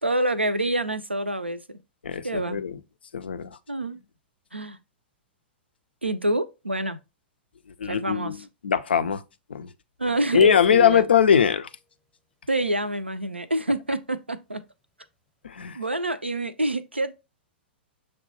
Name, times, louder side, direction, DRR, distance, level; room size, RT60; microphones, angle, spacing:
voice 1, 0.0-1.8 2.2-2.6 3.7-4.0 4.5-4.8 6.0-7.0 7.9-8.4 10.0-11.0 12.5-14.6 15.7-17.1, right 1 dB, 90° right, 0.4 m, -27 dB
voice 2, 2.0-2.8 3.1-3.6 7.8-9.2 9.5-9.7 10.3-11.7 15.4-15.8, left 8 dB, 70° left, 0.4 m, -21 dB
sound 1, 10.4-11.5, left 1 dB, 5° right, 0.6 m, -39 dB
6.4 x 2.1 x 2.7 m
figure-of-eight pair, 105°, 6 cm